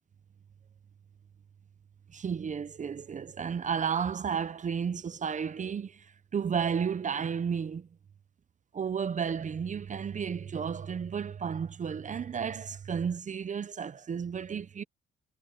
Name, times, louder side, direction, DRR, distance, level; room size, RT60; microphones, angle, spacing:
voice 1, 2.1-7.9 8.7-14.8, right 7 dB, 40° right, 0.8 m, -33 dB
cardioid pair, 90°, 20 cm